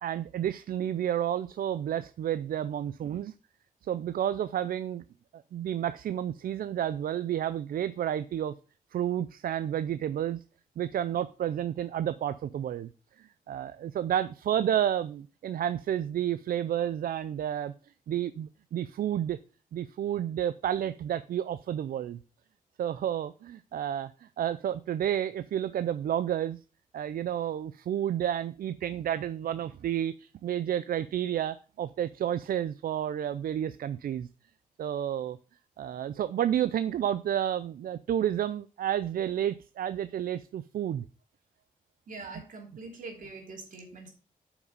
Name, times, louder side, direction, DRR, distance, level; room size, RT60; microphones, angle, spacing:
voice 1, 0.0-3.3 3.9-5.0 5.3-8.5 8.9-10.4 10.8-12.9 13.2-17.7 18.1-19.4 19.7-22.2 22.8-26.6 26.9-34.3 34.8-35.4 35.8-41.0, right 10 dB, 90° right, 0.4 m, -31 dB
voice 2, 42.1-44.1, right 3 dB, 70° right, 2.9 m, -43 dB
8.1 x 6.0 x 5.2 m
wide cardioid pair, 180°, 15 cm